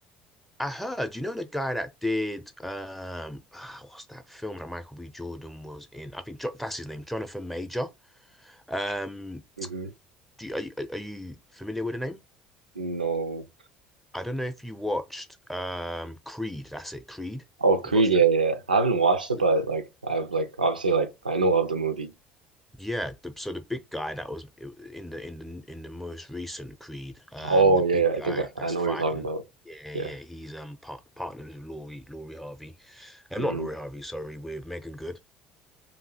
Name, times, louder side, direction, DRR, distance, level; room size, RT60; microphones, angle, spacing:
voice 1, 0.6-7.9 8.4-9.4 10.4-12.2 14.1-17.4 17.9-18.0 22.8-29.3 29.6-35.2, left 1 dB, 5° left, 0.6 m, -35 dB
voice 2, 9.6-9.9 12.8-13.5 17.6-22.1 27.4-29.4 29.9-30.2 33.4-33.7, right 3 dB, 90° right, 0.3 m, -24 dB
2.7 x 2.7 x 4.1 m
figure-of-eight pair, 60°, 4 cm